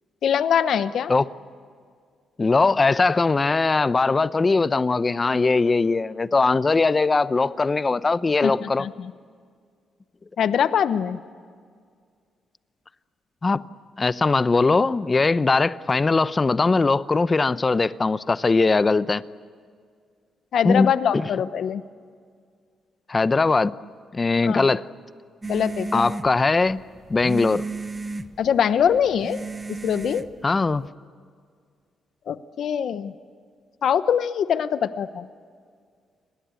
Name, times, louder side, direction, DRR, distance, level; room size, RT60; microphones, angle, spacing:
voice 1, 0.2-1.1 8.4-9.1 10.4-11.2 20.5-21.8 24.4-24.7 25.5-26.0 28.4-29.4 29.7-30.2 32.3-33.1 33.8-35.3, left 8 dB, 70° left, 0.9 m, -23 dB
voice 2, 2.4-8.9 13.4-13.6 14.0-19.2 20.6-21.3 23.1-23.7 24.1-24.9 25.9-26.8 27.1-27.6 30.4-30.9, left 3 dB, 30° left, 0.8 m, -20 dB
sound 1, 25.4-30.9, right 3 dB, 25° right, 1.1 m, -34 dB
29.5 x 22.5 x 8.4 m
cardioid pair, 85°, 0 cm